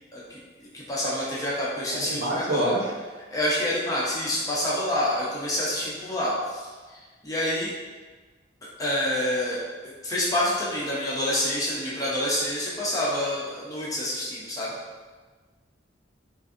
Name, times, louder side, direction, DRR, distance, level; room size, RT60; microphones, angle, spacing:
voice 1, 0.1-2.7 3.3-7.0 7.2-7.7 8.8-9.6 10.0-14.8, left 1 dB, 20° left, -7 dB, 0.8 m, -27 dB
voice 2, 1.9-2.9, right 1 dB, 65° right, -3 dB, 0.8 m, -27 dB
6.0 x 2.6 x 2.6 m, 1.4 s
head